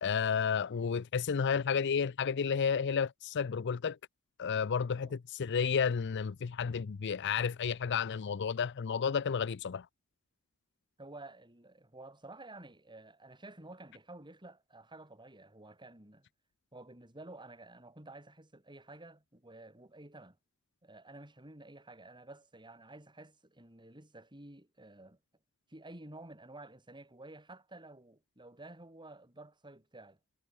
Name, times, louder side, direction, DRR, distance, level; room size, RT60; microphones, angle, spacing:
voice 1, 0.0-4.0 4.4-9.9, left 6 dB, 55° left, 0.5 m, -31 dB
voice 2, 11.0-16.3 16.7-20.4 20.8-25.2 25.7-30.2, right 2 dB, 20° right, 5.8 m, -52 dB
head